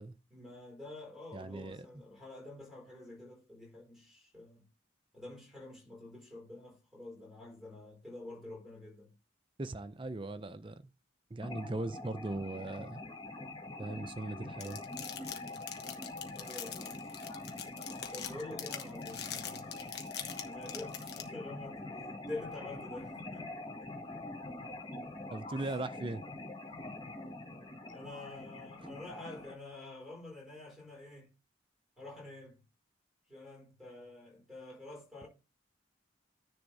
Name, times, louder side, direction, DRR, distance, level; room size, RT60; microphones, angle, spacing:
voice 1, 0.3-4.7 5.1-9.1 14.1-14.2 16.3-17.0 18.1-19.7 20.4-23.5 23.8-23.9 25.5-25.7 26.6-26.9 27.8-31.3 32.0-32.6 33.3-35.3, left 2 dB, ahead, 4.6 m, -48 dB
voice 2, 1.3-2.0 9.6-10.9 11.3-13.0 13.8-14.8 25.3-26.2 28.8-28.9, right 2 dB, 25° right, 0.5 m, -39 dB
sound 1, 11.4-29.5, left 2 dB, 25° left, 1.7 m, -45 dB
sound 2, 14.6-21.2, left 9 dB, 55° left, 1.3 m, -42 dB
10.0 x 3.5 x 5.4 m
head